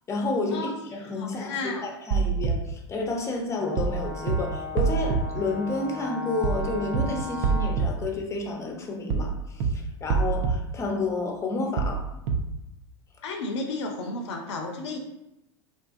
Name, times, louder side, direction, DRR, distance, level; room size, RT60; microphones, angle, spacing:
voice 1, 0.1-12.0, left 3 dB, 20° left, 2 dB, 0.6 m, -30 dB
voice 2, 1.2-1.8 13.2-15.0, left 3 dB, 70° left, 2 dB, 0.5 m, -32 dB
sound 1, 2.1-2.5 3.8-4.0 4.3-4.4 4.8-5.2 6.4-6.6 6.9-7.0 7.4-7.9 9.1-9.3 9.6-9.7 10.1-10.5 11.8-12.0 12.3-12.4, right 6 dB, 50° right, 0.4 m, -24 dB
Brass instrument, 3.5-7.9, left 3 dB, 20° right, 0.9 m, -37 dB
2.7 x 2.2 x 2.5 m, 0.89 s
hypercardioid pair, 90°, 15 cm